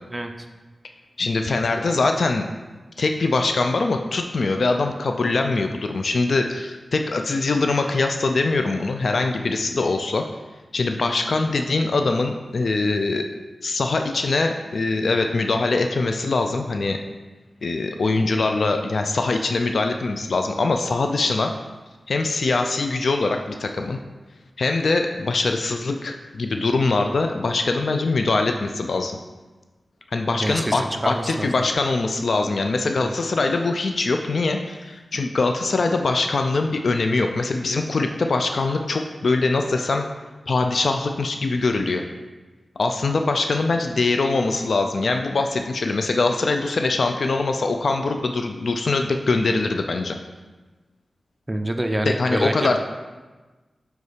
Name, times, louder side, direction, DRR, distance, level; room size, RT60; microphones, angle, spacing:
voice 1, 1.2-2.5 3.0-10.3 10.7-13.3 13.6-17.0 17.6-21.5 22.1-24.0 24.6-29.1 30.1-40.1 40.5-42.0 42.8-50.2 52.1-52.8, left 3 dB, 70° left, 5 dB, 0.3 m, -22 dB
voice 2, 30.4-31.5 33.0-33.1 51.5-52.8, right 1 dB, 20° right, 4 dB, 0.5 m, -26 dB
4.6 x 4.1 x 4.9 m, 1.3 s
wide cardioid pair, 70°, 0 cm